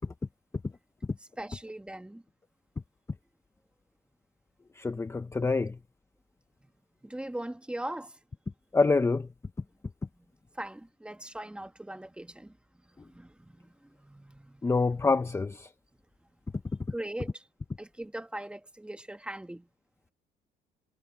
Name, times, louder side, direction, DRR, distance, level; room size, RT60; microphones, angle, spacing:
voice 1, 1.2-2.2 7.0-8.2 10.2-10.3 10.5-12.6 13.1-14.7 16.9-17.5 17.8-19.7, right 1 dB, 5° right, 1.8 m, -40 dB
voice 2, 4.8-5.8 8.7-9.3 14.6-15.7, left 3 dB, 15° left, 0.9 m, -26 dB
cardioid pair, 110°, 17 cm